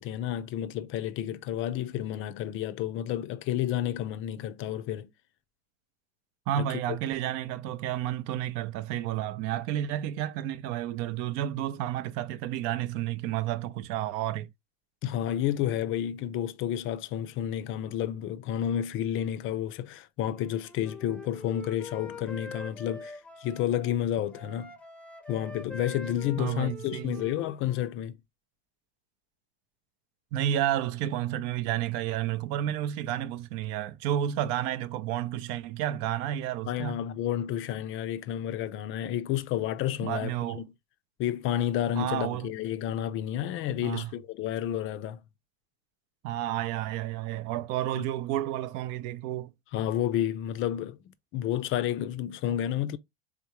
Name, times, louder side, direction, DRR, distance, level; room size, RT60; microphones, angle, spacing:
voice 1, 0.0-5.1 6.6-7.0 15.0-24.7 25.3-28.2 36.7-40.6 41.2-45.2 48.0-48.1 49.7-53.0, left 11 dB, 40° left, 0.4 m, -31 dB
voice 2, 6.5-14.5 26.4-27.2 30.3-37.0 40.0-40.6 41.9-42.5 43.8-44.1 46.2-49.5, right 12 dB, 55° right, 0.5 m, -31 dB
Wind instrument woodwind instrument, 20.3-24.0 24.3-27.9, left 3 dB, 5° left, 0.7 m, -44 dB
3.6 x 3.5 x 2.9 m
hypercardioid pair, 90°, 31 cm